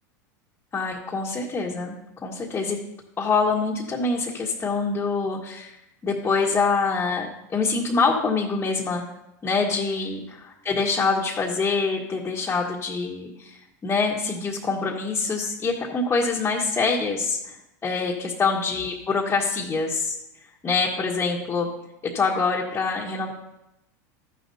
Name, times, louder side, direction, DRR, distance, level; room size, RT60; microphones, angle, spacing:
voice 1, 0.7-1.9 2.2-2.8 3.2-5.7 6.0-9.0 9.4-13.6 13.8-17.5 17.8-20.2 20.6-21.7 22.0-23.3, left 4 dB, 20° left, -4 dB, 1.6 m, -25 dB
13.5 x 10.5 x 2.8 m, 0.87 s
hypercardioid pair, 110°, 10 cm